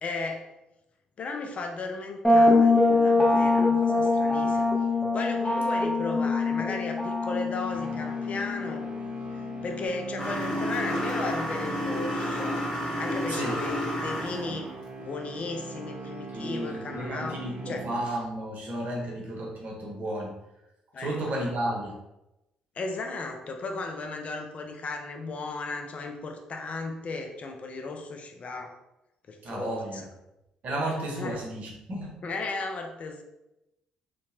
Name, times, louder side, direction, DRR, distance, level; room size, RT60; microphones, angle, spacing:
voice 1, 0.0-0.5 1.2-4.7 5.1-8.9 9.6-12.6 13.0-14.7 15.0-17.4 17.7-17.8 20.9-21.2 22.8-28.8 29.3-30.1 31.2-31.4 32.2-33.2, left 3 dB, 45° left, 4 dB, 0.4 m, -35 dB
sound 1, 2.2-9.9, left 2 dB, 10° left, 0.7 m, -24 dB
sound 2, 7.7-18.4, right 4 dB, 30° right, 0.4 m, -41 dB
sound 3, 10.2-14.6, left 1 dB, 30° left, 1.4 m, -31 dB
voice 2, 13.3-13.6 16.3-20.3 21.0-22.0 29.4-30.0 30.6-32.2, right 1 dB, 55° right, -2 dB, 0.9 m, -33 dB
2.8 x 2.2 x 2.6 m, 0.91 s
hypercardioid pair, 55°, 3 cm